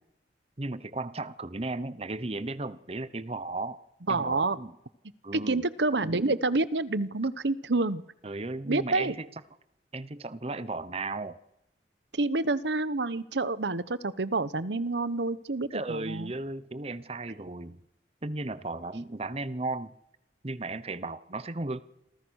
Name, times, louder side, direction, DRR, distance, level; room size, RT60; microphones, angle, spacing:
voice 1, 0.6-3.8 4.1-4.7 5.2-5.6 8.2-9.3 9.9-11.4 15.7-17.8 18.2-19.9 20.4-21.8, right 2 dB, 35° right, 15 dB, 0.9 m, -35 dB
voice 2, 4.1-4.6 5.3-8.0 8.7-9.1 12.1-16.3, right 3 dB, 75° right, 16 dB, 1.0 m, -28 dB
28.0 x 25.0 x 6.5 m, 0.85 s
head